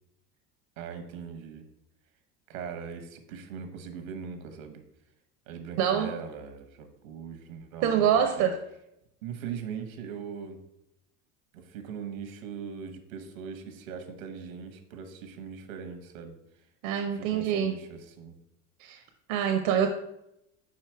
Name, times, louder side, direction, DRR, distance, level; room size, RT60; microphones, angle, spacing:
voice 1, 0.8-1.6 2.5-4.8 5.5-8.0 8.4-8.5 9.2-10.6 11.5-16.3 17.1-18.3, right 6 dB, 85° right, 7 dB, 1.1 m, -40 dB
voice 2, 5.8-6.1 7.8-8.6 16.8-17.7 18.8-19.0 19.3-19.9, right 8 dB, 70° right, 5 dB, 0.7 m, -25 dB
5.0 x 4.4 x 4.4 m, 0.83 s
supercardioid pair, 95°, 40 cm